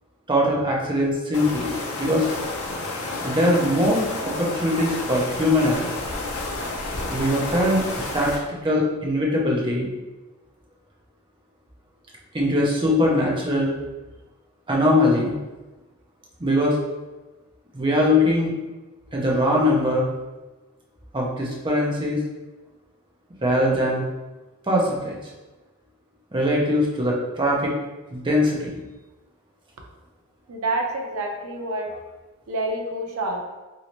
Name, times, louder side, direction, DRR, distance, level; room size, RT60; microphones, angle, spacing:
voice 1, 0.3-2.3 3.2-5.9 7.1-9.9 12.3-13.7 14.7-15.4 16.4-16.8 17.7-18.5 19.1-20.1 21.1-22.2 23.4-24.0 24.7-25.2 26.3-27.7 28.1-28.7, left 1 dB, 20° right, -3 dB, 0.6 m, -21 dB
sound 1, 1.3-8.4, left 2 dB, 85° left, 0.6 m, -30 dB
voice 2, 30.5-31.9 32.5-33.4, right 2 dB, 80° right, 1 dB, 0.6 m, -27 dB
3.0 x 2.8 x 2.9 m, 1.1 s
head